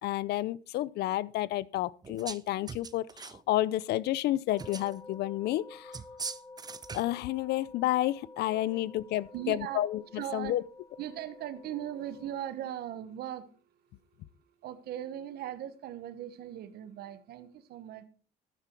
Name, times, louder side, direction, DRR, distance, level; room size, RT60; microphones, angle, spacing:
voice 1, 0.0-5.9 6.9-10.6, left 15 dB, 75° left, 0.6 m, -30 dB
sound 1, 2.0-2.4 2.7-3.4 4.6-5.0 5.9-7.2, right 5 dB, 25° right, 0.7 m, -41 dB
sound 2, 4.5-12.4, left 3 dB, 20° left, 1.9 m, -51 dB
voice 2, 9.3-9.8 10.1-10.6 11.0-13.5 14.6-18.1, right 11 dB, 70° right, 1.2 m, -39 dB
13.0 x 10.0 x 4.5 m
cardioid pair, 110°, 17 cm